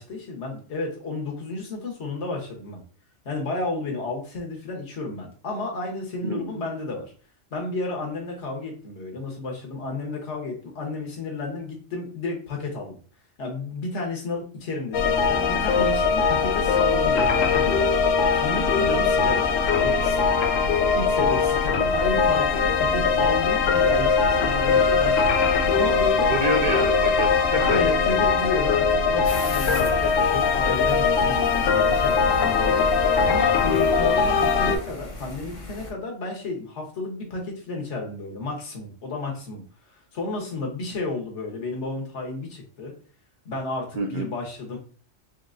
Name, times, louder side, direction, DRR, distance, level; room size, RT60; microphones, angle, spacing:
voice 1, 0.0-2.8 3.2-7.1 7.5-13.0 13.4-17.9 18.3-20.2 20.7-26.3 27.6-42.9 43.4-44.8, left 3 dB, 65° left, 0 dB, 1.4 m, -32 dB
voice 2, 6.2-6.6 26.3-27.8 44.0-44.3, right 3 dB, 50° right, 4 dB, 0.6 m, -28 dB
sound 1, 14.9-34.8, left 5 dB, 85° left, 1.0 m, -21 dB
sound 2, 29.2-35.9, left 2 dB, 35° left, 0.6 m, -38 dB
4.5 x 2.9 x 2.5 m, 0.44 s
omnidirectional pair, 1.3 m